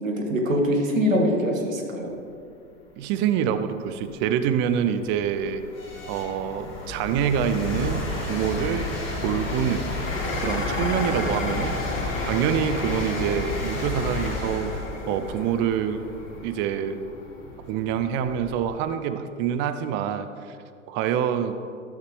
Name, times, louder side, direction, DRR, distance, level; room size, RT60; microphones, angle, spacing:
voice 1, 0.0-2.1, equal, 85° right, 1 dB, 1.4 m, -23 dB
voice 2, 3.0-5.6 6.1-8.9 9.2-9.8 10.4-16.0 16.4-17.0 17.7-20.6 20.9-21.5, right 8 dB, 30° right, 9 dB, 0.5 m, -26 dB
sound 1, 3.3-3.4 4.0-18.8, left 2 dB, 30° left, 2.3 m, -32 dB
Dishes pots and pans, 10.0-18.8, left 3 dB, 75° left, 1.3 m, -35 dB
12.0 x 6.6 x 3.2 m, 2.5 s
figure-of-eight pair, 95°, 39 cm